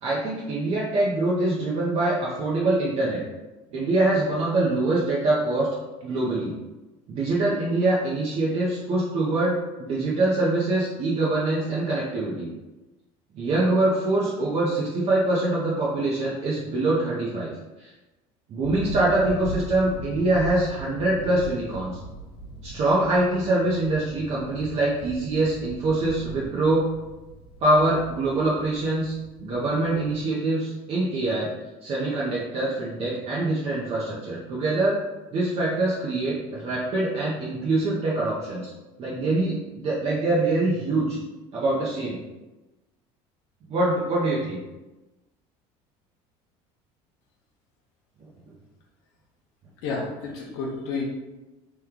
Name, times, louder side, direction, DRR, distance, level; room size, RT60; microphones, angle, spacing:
voice 1, 0.0-3.2 3.7-5.7 6.0-6.5 7.1-12.5 13.3-17.5 17.8-17.9 18.5-22.0 22.6-26.8 27.6-29.1 29.4-31.5 31.8-35.0 35.3-38.7 39.0-41.2 41.5-42.2 43.7-44.6, right 2 dB, 45° right, -6 dB, 0.7 m, -24 dB
sound 1, 18.6-30.3, right 2 dB, 40° left, 1.2 m, -40 dB
voice 2, 49.8-51.0, left 4 dB, 80° left, -2 dB, 0.7 m, -30 dB
3.1 x 2.2 x 3.6 m, 1.1 s
supercardioid pair, 110°, 14 cm